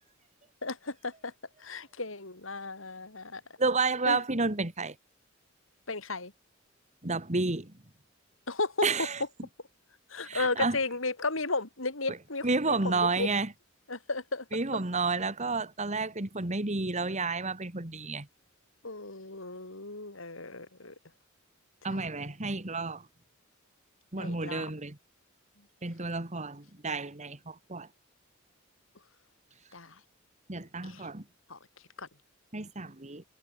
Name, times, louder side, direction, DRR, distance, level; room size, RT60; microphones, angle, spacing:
voice 1, 0.6-1.3 1.6-3.4 4.1-4.2 5.9-6.3 8.5-8.9 10.1-13.3 13.9-14.5 14.7-14.8 18.8-20.9 21.9-22.0 24.2-24.7 29.7-30.0 30.8-31.1 31.5-31.6 32.0-32.1, left 3 dB, 75° left, 4.2 m, -34 dB
voice 2, 3.6-4.9 7.0-7.7 8.8-9.2 10.2-10.8 12.1-12.2 12.4-13.5 14.5-18.3 21.8-23.1 24.1-25.0 25.8-27.9 30.5-31.2 32.5-33.2, right 3 dB, 35° right, 2.2 m, -31 dB
head